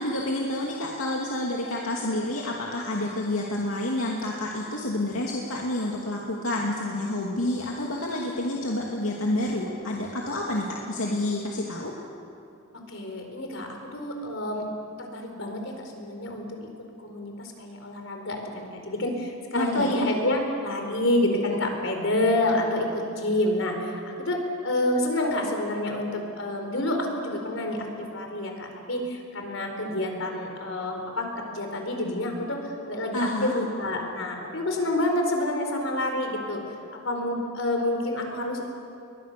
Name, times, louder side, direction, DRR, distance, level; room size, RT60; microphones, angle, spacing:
voice 1, 0.0-11.9 19.5-20.0 33.1-33.6, left 1 dB, 85° left, -2 dB, 2.6 m, -29 dB
voice 2, 12.9-14.6 15.1-16.7 17.0-31.3 31.5-32.6 32.9-36.6 37.0-38.7, left 1 dB, 65° left, 3 dB, 4.6 m, -28 dB
30.0 x 23.0 x 6.9 m, 2.6 s
head